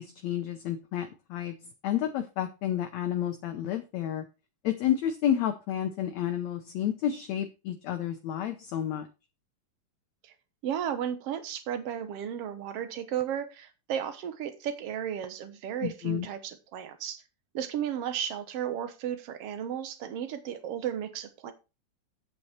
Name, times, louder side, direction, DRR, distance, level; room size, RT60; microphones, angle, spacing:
voice 1, 0.0-1.5 1.8-4.2 4.6-9.1 15.8-16.3, left 10 dB, 75° left, 8 dB, 1.6 m, -30 dB
voice 2, 10.6-17.2 17.5-21.5, right 9 dB, 65° right, 10 dB, 1.6 m, -34 dB
8.5 x 8.3 x 4.3 m, 0.29 s
omnidirectional pair, 4.1 m